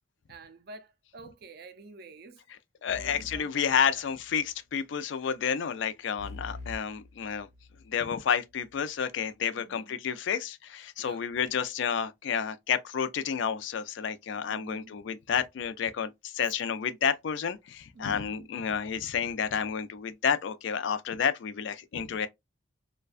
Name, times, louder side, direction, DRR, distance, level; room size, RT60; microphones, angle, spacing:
voice 1, 0.3-2.4 2.8-4.0 9.6-9.9 11.0-11.2 14.0-14.1 14.5-14.9 17.9-18.5, right 3 dB, 50° right, 0.4 m, -49 dB
voice 2, 2.8-7.5 7.9-22.3, left 7 dB, 65° left, 0.3 m, -30 dB
sound 1, 2.9-4.5 6.2-7.9, left 2 dB, 85° left, 0.9 m, -45 dB
2.4 x 2.2 x 2.4 m
head